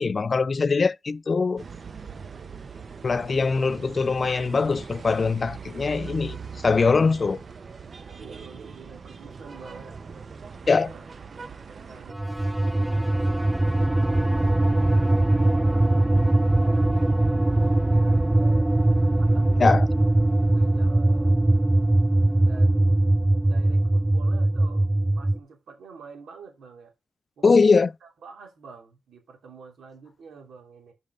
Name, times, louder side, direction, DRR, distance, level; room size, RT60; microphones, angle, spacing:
voice 1, 0.0-1.6 3.0-6.4 6.6-7.4 10.7-10.9 19.6-19.9 27.4-27.9, left 4 dB, 45° left, 0.3 m, -22 dB
sound 1, 1.6-12.1, right 5 dB, 50° right, 0.8 m, -41 dB
voice 2, 8.0-10.0 10.6-11.0 11.7-13.5 14.0-15.9 16.5-18.7 19.2-21.5 22.4-23.0 23.4-26.9 27.4-30.9, right 5 dB, 80° right, 2.6 m, -47 dB
sound 2, 12.1-25.4, right 1 dB, 15° right, 0.5 m, -21 dB
5.3 x 5.1 x 5.3 m
cardioid pair, 70°, 0 cm